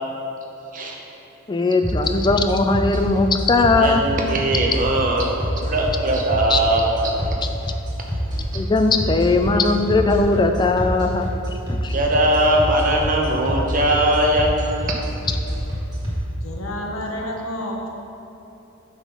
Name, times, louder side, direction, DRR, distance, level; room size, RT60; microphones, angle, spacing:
voice 1, 1.5-4.0 6.5-6.6 8.5-11.3 11.7-11.9, left 3 dB, 20° left, 6 dB, 0.3 m, -19 dB
sound 1, 1.8-16.1, equal, 20° right, 1.6 m, -27 dB
voice 2, 3.8-7.1 11.9-14.5, right 1 dB, 40° right, 0 dB, 0.9 m, -20 dB
voice 3, 16.4-17.9, left 1 dB, 80° left, -1 dB, 1.1 m, -29 dB
8.0 x 4.3 x 5.4 m, 3.0 s
head